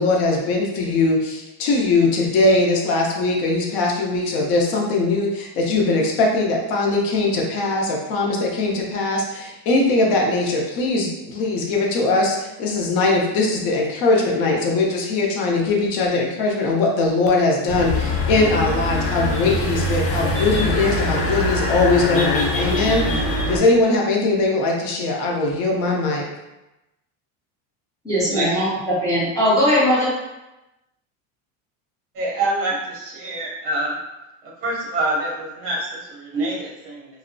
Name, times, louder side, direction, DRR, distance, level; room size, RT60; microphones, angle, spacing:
voice 1, 0.0-26.2, left 3 dB, 55° left, -1 dB, 0.6 m, -20 dB
sound 1, 17.7-23.6, left 1 dB, 85° left, 0.9 m, -23 dB
voice 2, 28.0-30.1, equal, 10° left, -11 dB, 0.3 m, -19 dB
voice 3, 32.1-33.9 34.6-37.1, right 2 dB, 30° right, -4 dB, 0.6 m, -26 dB
2.6 x 2.0 x 2.5 m, 0.97 s
cardioid pair, 165°, 45 cm